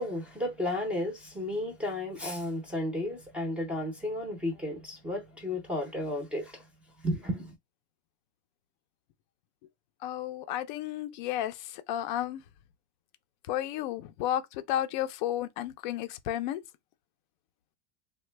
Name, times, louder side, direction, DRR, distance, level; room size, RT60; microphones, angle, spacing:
voice 1, 0.0-6.7 7.0-7.5, left 1 dB, 5° right, 0.6 m, -33 dB
voice 2, 10.0-12.4 13.5-16.6, left 12 dB, 45° left, 0.5 m, -32 dB
3.1 x 2.2 x 3.2 m
supercardioid pair, 150°, 34 cm